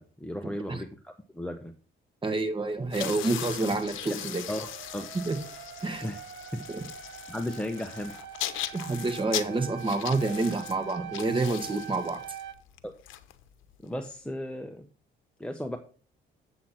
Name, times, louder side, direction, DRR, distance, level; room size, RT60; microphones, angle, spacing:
voice 1, 0.0-1.7 4.5-5.1 6.0-6.2 6.5-6.6 7.3-8.1 12.8-12.9 13.8-14.9 15.4-15.8, left 1 dB, 5° left, 5 dB, 0.9 m, -35 dB
voice 2, 2.2-4.4 5.1-5.4 5.8-6.1 6.7-6.8 8.7-12.4, right 3 dB, 25° right, 6 dB, 1.8 m, -28 dB
sound 1, 2.8-13.9, left 13 dB, 85° left, 0.8 m, -39 dB
sound 2, 3.9-12.5, right 10 dB, 70° right, 0.9 m, -44 dB
8.0 x 7.6 x 4.3 m, 0.39 s
cardioid pair, 90°, 20 cm